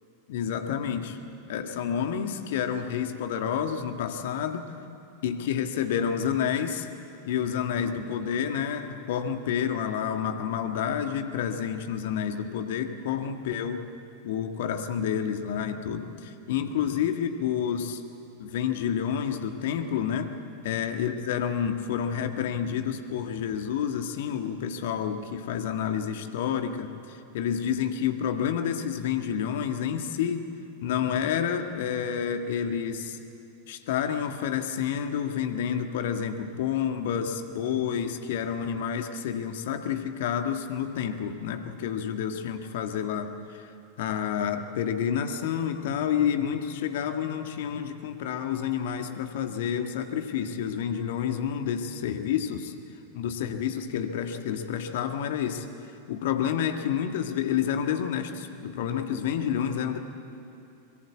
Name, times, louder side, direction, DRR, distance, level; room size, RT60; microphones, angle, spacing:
voice 1, 0.3-1.2 1.5-4.7 5.2-6.9 7.3-13.8 14.2-18.0 18.4-20.3 20.6-30.5 30.8-33.2 33.7-43.7 44.0-52.7 53.1-55.7 56.1-60.0, left 8 dB, 55° left, 7 dB, 1.7 m, -29 dB
23.5 x 22.5 x 8.5 m, 2.8 s
figure-of-eight pair, 90°, 0 cm